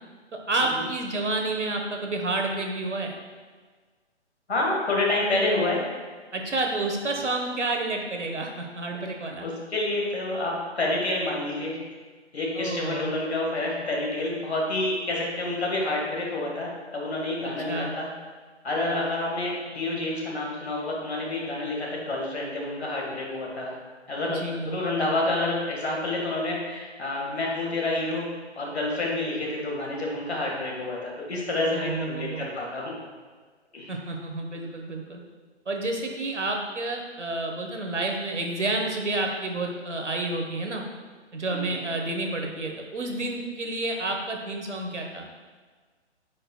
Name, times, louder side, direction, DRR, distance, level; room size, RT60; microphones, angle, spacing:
voice 1, 0.3-3.2 6.3-9.5 12.5-13.1 17.4-17.9 24.3-24.8 31.7-32.5 33.9-35.2 35.7-40.8 41.3-45.3, right 2 dB, 80° right, 2 dB, 1.2 m, -30 dB
voice 2, 4.5-5.9 9.4-11.8 12.3-18.1 18.6-23.7 24.1-28.3 28.6-32.9 33.7-33.9 41.5-41.8, left 2 dB, 60° left, -2 dB, 1.9 m, -28 dB
8.7 x 5.1 x 2.3 m, 1.5 s
figure-of-eight pair, 135°, 35 cm